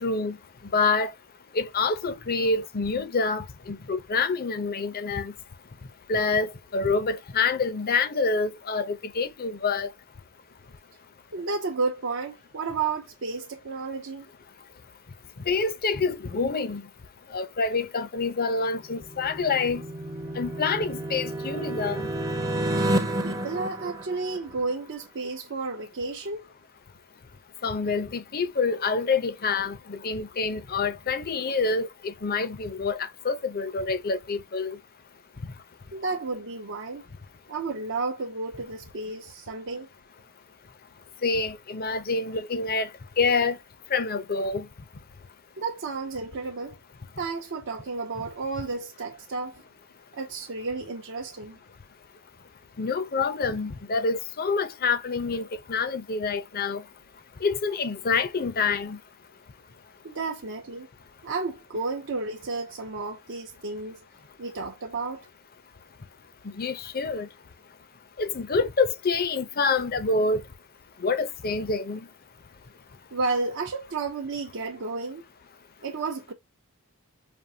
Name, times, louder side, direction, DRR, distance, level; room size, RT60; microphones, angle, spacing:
voice 1, 0.0-0.4 0.7-1.1 1.5-5.3 6.1-9.9 15.5-16.8 17.3-19.8 20.4-22.1 27.6-34.8 41.2-42.9 43.2-43.6 43.9-44.7 52.8-56.8 57.4-59.0 66.6-67.3 68.2-70.4 71.0-72.1, left 4 dB, 40° left, 0.6 m, -27 dB
voice 2, 11.3-14.3 23.2-26.5 35.9-37.0 37.5-39.9 45.6-46.8 47.2-49.6 50.1-51.6 60.0-60.9 61.2-64.0 64.4-65.3 73.1-75.2 75.8-76.3, right 3 dB, 55° right, 0.7 m, -32 dB
Echo Chromatic Riser, 18.8-24.7, right 1 dB, 15° right, 0.7 m, -30 dB
5.2 x 2.6 x 2.7 m
head